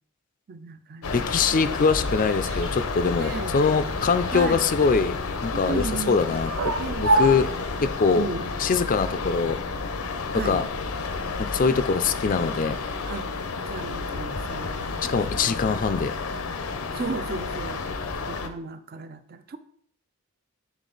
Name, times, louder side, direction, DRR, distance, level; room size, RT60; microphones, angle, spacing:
voice 1, 0.5-1.5 3.2-3.6 4.3-4.7 5.5-6.4 6.8-7.5 8.2-8.6 10.3-10.6 13.1-13.3 13.7-15.0 15.3-15.7 16.9-17.9 18.3-19.6, right 4 dB, 45° right, 11 dB, 0.4 m, -35 dB
sound 1, 1.0-18.5, left 4 dB, 80° left, 0.7 m, -31 dB
voice 2, 1.1-5.2 5.4-6.7 7.0-7.5 7.8-8.3 8.6-9.6 10.3-10.7 11.4-12.8 15.0-16.1, left 5 dB, 40° left, 12 dB, 0.4 m, -23 dB
sound 2, 1.5-8.1, right 2 dB, 65° right, 0.9 m, -31 dB
8.2 x 3.7 x 3.9 m, 0.65 s
head